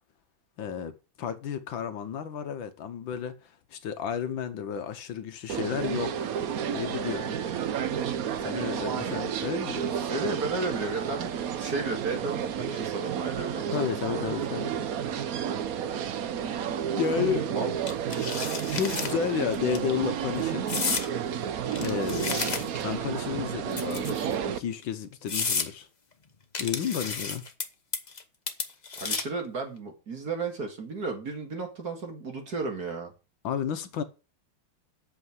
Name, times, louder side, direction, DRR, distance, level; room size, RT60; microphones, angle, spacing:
voice 1, 0.6-6.4 6.7-7.4 8.4-10.1 13.7-14.7 15.6-15.7 16.9-17.5 18.7-20.7 21.8-25.9 26.6-27.4 33.4-34.0, left 8 dB, 70° left, 1.6 m, -32 dB
sound 1, 5.5-24.6, right 8 dB, 65° right, 0.9 m, -31 dB
voice 2, 10.1-11.3 11.6-13.8 17.5-17.7 29.0-33.1, right 3 dB, 45° right, 2.6 m, -33 dB
sound 2, 17.9-19.1 19.5-19.8 20.7-21.1 21.7-22.9 23.7-24.3 24.8-24.9 25.3-25.7 26.5-27.6 27.9-28.2 28.5-29.4, left 4 dB, 35° left, 0.6 m, -31 dB
8.5 x 6.6 x 8.0 m
omnidirectional pair, 2.3 m